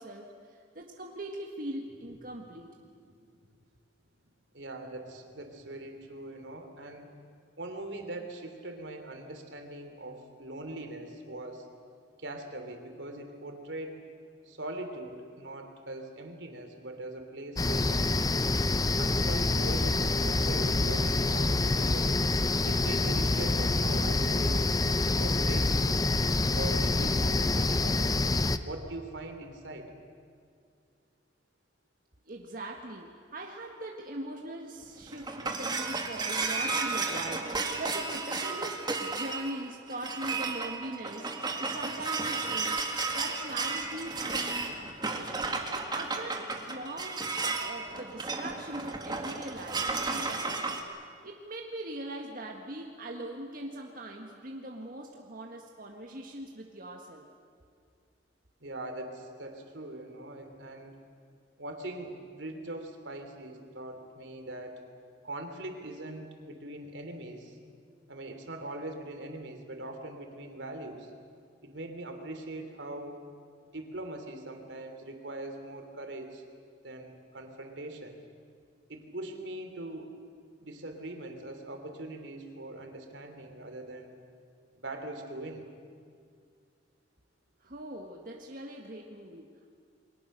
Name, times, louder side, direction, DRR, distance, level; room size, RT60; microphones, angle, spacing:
voice 1, 0.0-2.7 32.3-45.4 45.7-47.3 47.5-50.6 51.2-57.3 87.6-89.7, right 1 dB, 50° right, 1 dB, 1.7 m, -41 dB
voice 2, 4.5-7.1 7.6-11.7 12.2-14.0 14.4-18.2 18.9-22.2 22.6-26.0 26.6-28.0 28.6-29.9 58.6-61.0 61.6-64.8 65.2-67.6 68.1-71.1 71.6-73.2 73.7-76.4 76.8-78.2 78.9-80.1 80.6-84.1 84.8-85.7, right 1 dB, 80° right, 5 dB, 3.1 m, -41 dB
sound 1, 17.6-28.6, left 2 dB, 20° left, 0.6 m, -26 dB
sound 2, 34.8-50.8, right 3 dB, 25° right, 1.9 m, -33 dB
29.0 x 22.5 x 6.7 m, 2.2 s
head